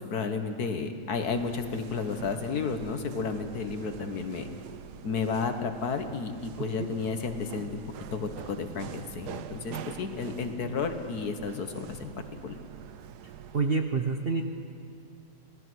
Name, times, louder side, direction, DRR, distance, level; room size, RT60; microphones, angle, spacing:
voice 1, 0.0-4.5 5.0-7.8 8.1-12.1 12.4-12.6, left 5 dB, 65° left, 7 dB, 1.7 m, -32 dB
sound 1, 1.2-13.8, right 9 dB, 75° right, 1.2 m, -45 dB
voice 2, 6.6-6.9 13.5-14.4, right 4 dB, 40° right, 4 dB, 0.9 m, -28 dB
27.0 x 17.5 x 6.2 m, 2.5 s
omnidirectional pair, 1.8 m